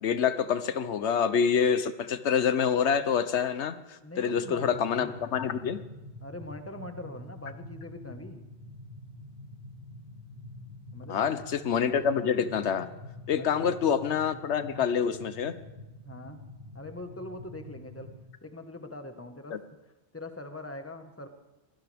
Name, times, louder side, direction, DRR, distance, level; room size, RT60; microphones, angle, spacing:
voice 1, 0.0-5.8 11.1-12.9 13.3-15.5 19.5-19.6, left 7 dB, 85° left, 12 dB, 1.1 m, -27 dB
voice 2, 4.0-4.7 5.0-5.1 6.2-8.4 10.9-11.4 13.3-13.7 16.0-16.4 16.7-18.1 18.4-19.6 20.1-21.3, left 2 dB, 15° left, 6 dB, 1.4 m, -42 dB
sound 1, 4.3-18.2, left 2 dB, 60° right, 7.9 m, -46 dB
23.5 x 16.5 x 3.5 m, 1.1 s
omnidirectional pair, 1.1 m